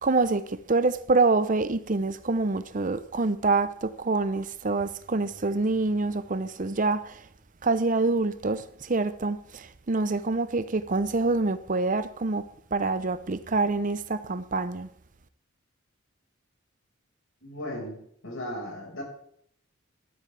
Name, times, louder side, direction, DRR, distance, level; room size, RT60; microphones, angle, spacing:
voice 1, 0.0-7.2 7.6-12.4 12.7-14.9, right 3 dB, 40° right, 0.7 m, -26 dB
voice 2, 17.4-19.0, left 1 dB, 75° left, 5.2 m, -36 dB
14.5 x 12.5 x 3.4 m
head